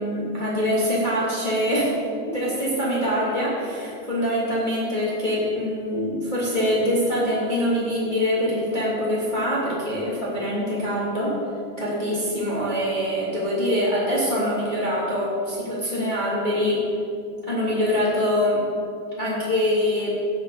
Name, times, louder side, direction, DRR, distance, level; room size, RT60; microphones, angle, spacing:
voice 1, 0.0-1.9 2.3-11.3 11.8-16.8 17.5-18.6 19.2-20.1, equal, 15° left, -7 dB, 2.2 m, -24 dB
16.0 x 8.2 x 5.1 m, 2.5 s
omnidirectional pair, 5.2 m